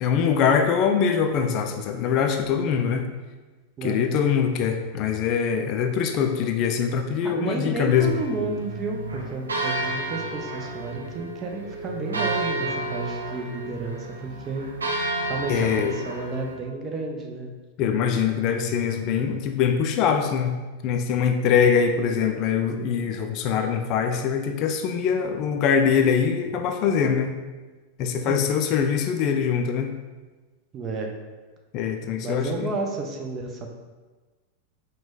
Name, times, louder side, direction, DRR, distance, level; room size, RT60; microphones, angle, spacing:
voice 1, 0.0-3.0 3.8-8.1 15.5-15.9 17.8-20.6 20.8-27.4 28.0-30.0 31.7-32.7, left 7 dB, 40° left, 5 dB, 0.3 m, -23 dB
voice 2, 3.8-4.1 7.2-14.7 15.2-17.5 28.3-28.5 30.7-31.1 32.2-33.7, right 3 dB, 25° right, 2 dB, 0.6 m, -31 dB
sound 1, 7.9-16.5, right 2 dB, 75° right, 0.6 m, -31 dB
4.8 x 2.2 x 3.6 m, 1.3 s
figure-of-eight pair, 90°, 0 cm